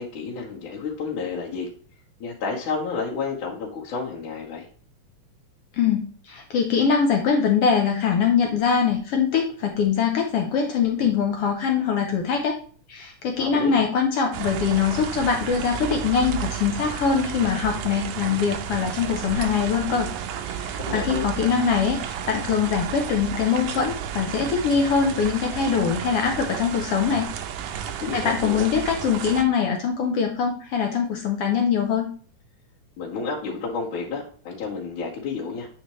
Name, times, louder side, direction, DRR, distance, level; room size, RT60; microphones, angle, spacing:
voice 1, 0.0-1.7 2.2-4.7 13.4-13.8 20.8-21.3 28.0-28.7 33.0-35.7, left 4 dB, 90° left, -6 dB, 2.9 m, -30 dB
voice 2, 5.8-12.6 12.9-20.1 20.5-27.3 27.8-32.1, left 6 dB, 70° left, 3 dB, 1.5 m, -23 dB
sound 1, 14.3-29.4, right 9 dB, 75° right, 1.6 m, -32 dB
8.8 x 4.3 x 3.1 m, 0.43 s
omnidirectional pair, 3.4 m